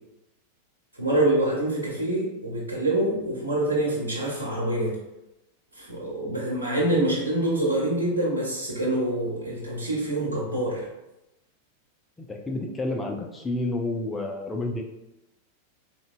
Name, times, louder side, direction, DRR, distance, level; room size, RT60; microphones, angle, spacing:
voice 1, 1.0-4.9 5.8-10.9, right 1 dB, 80° right, -5 dB, 0.9 m, -26 dB
voice 2, 12.2-14.8, left 2 dB, 10° left, 1 dB, 0.4 m, -30 dB
3.7 x 2.1 x 2.3 m, 0.92 s
figure-of-eight pair, 90°, 0 cm